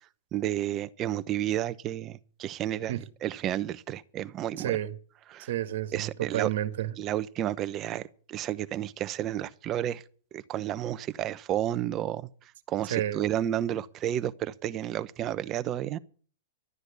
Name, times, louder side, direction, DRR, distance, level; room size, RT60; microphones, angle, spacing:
voice 1, 0.3-4.8 5.3-5.5 5.9-6.5 7.0-10.0 10.3-12.3 12.7-16.0, right 12 dB, 30° right, 0.9 m, -31 dB
voice 2, 4.6-4.9 5.4-6.9 12.9-13.2, right 12 dB, 65° right, 1.7 m, -30 dB
12.5 x 9.8 x 8.3 m
hypercardioid pair, 120°, 0 cm